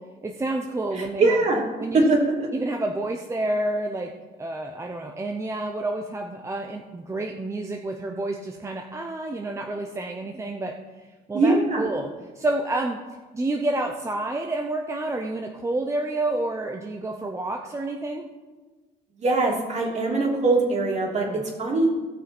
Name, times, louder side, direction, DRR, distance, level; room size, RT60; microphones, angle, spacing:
voice 1, 0.2-1.4 1.8-2.1 2.5-4.1 4.4-10.7 11.3-12.1 12.3-13.0 13.3-18.3 21.3-21.4, right 2 dB, 15° right, 2 dB, 0.8 m, -29 dB
voice 2, 0.9-1.6 1.9-2.5 11.3-11.9 19.2-21.9, right 2 dB, 40° right, -1 dB, 3.0 m, -22 dB
16.5 x 6.4 x 4.4 m, 1.3 s
cardioid pair, 110°, 17 cm